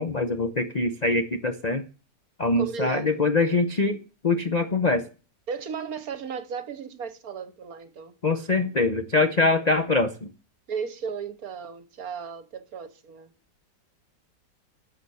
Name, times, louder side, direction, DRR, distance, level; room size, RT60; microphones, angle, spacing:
voice 1, 0.0-1.8 2.4-4.0 4.2-5.1 8.2-10.3, left 3 dB, 50° left, 0.5 m, -23 dB
voice 2, 2.6-3.2 5.5-8.1 10.7-13.3, right 6 dB, 60° right, 1.4 m, -35 dB
12.0 x 7.0 x 6.9 m
omnidirectional pair, 1.9 m